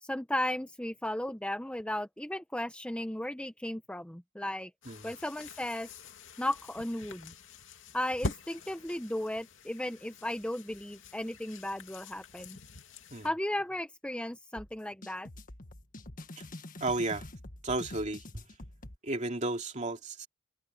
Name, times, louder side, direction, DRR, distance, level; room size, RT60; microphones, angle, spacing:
voice 1, 0.0-4.7 5.0-5.9 6.4-7.3 7.9-12.6 13.2-15.3, left 1 dB, 5° left, 0.8 m, -35 dB
sound 1, 4.8-13.3, left 2 dB, 80° left, 2.7 m, -44 dB
sound 2, 14.6-19.0, left 1 dB, 45° left, 1.7 m, -46 dB
voice 2, 16.8-17.3 17.6-18.4 19.0-20.3, right 2 dB, 40° right, 2.7 m, -33 dB
open air
head